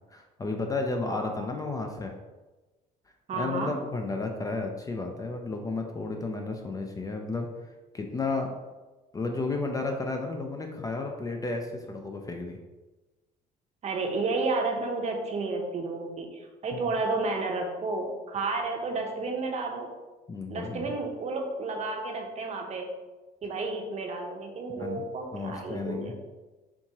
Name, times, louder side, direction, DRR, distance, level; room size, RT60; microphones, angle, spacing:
voice 1, 0.1-2.1 3.3-7.5 7.9-8.6 9.1-12.6 16.7-16.8 20.3-20.9 24.8-25.0 25.3-26.1, left 3 dB, 20° left, 3 dB, 0.4 m, -32 dB
voice 2, 1.1-1.5 3.3-3.8 13.8-19.9 20.5-22.9 23.4-26.2, right 3 dB, 40° right, 2 dB, 0.7 m, -31 dB
4.4 x 2.8 x 2.8 m, 1.2 s
cardioid pair, 110°, 17 cm